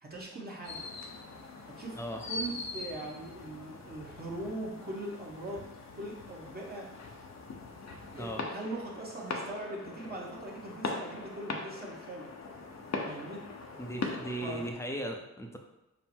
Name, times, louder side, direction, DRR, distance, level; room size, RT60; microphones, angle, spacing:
voice 1, 0.0-0.8 1.8-5.6 5.9-6.9 8.1-12.3 13.0-13.4 14.4-14.7, right 2 dB, 30° right, -3 dB, 1.1 m, -41 dB
sound 1, 0.6-14.7, left 3 dB, 60° left, 0.8 m, -41 dB
voice 2, 13.8-15.6, right 1 dB, 10° left, 3 dB, 0.6 m, -37 dB
5.6 x 2.1 x 4.4 m, 0.97 s
cardioid pair, 90°, 31 cm